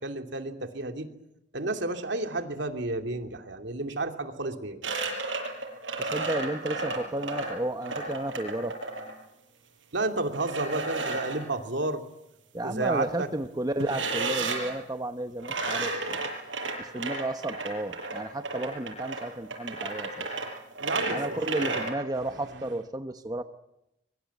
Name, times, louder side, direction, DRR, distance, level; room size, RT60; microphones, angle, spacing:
voice 1, 0.0-1.1 1.5-4.9 9.9-12.0 12.6-13.3 20.8-21.2 21.5-21.8, right 2 dB, 70° right, 5 dB, 2.7 m, -31 dB
sound 1, 4.8-9.1 10.3-11.4 13.8-14.7 15.4-21.9, right 3 dB, 90° right, 7.4 m, -32 dB
voice 2, 6.0-8.8 12.5-16.3 16.8-20.3 21.1-23.4, right 1 dB, 20° right, 8 dB, 0.9 m, -32 dB
24.5 x 23.5 x 8.4 m, 0.86 s
head